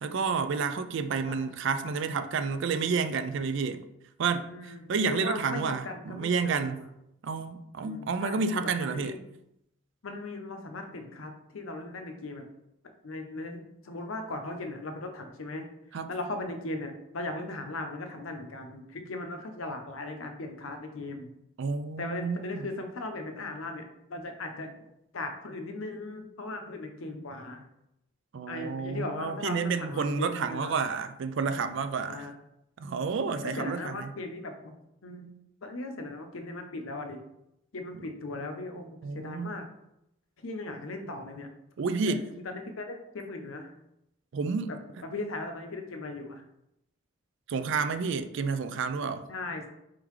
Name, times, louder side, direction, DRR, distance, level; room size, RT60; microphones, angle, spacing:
voice 1, 0.0-3.8 4.2-6.9 7.2-9.2 15.9-16.1 21.6-22.7 28.3-32.3 32.8-34.1 39.0-39.5 41.8-42.3 44.3-44.7 47.5-49.3, right 5 dB, 60° right, 0.4 m, -30 dB
voice 2, 1.3-1.9 4.5-6.9 7.8-9.2 10.0-12.4 13.0-15.7 16.1-21.3 22.0-24.8 25.1-27.6 28.5-30.8 32.0-32.3 33.4-34.7 35.0-35.3 35.6-37.2 37.7-39.7 40.4-41.5 42.1-43.7 44.7-46.4 49.3-49.7, left 2 dB, 80° left, 0.7 m, -38 dB
4.5 x 3.7 x 3.1 m
head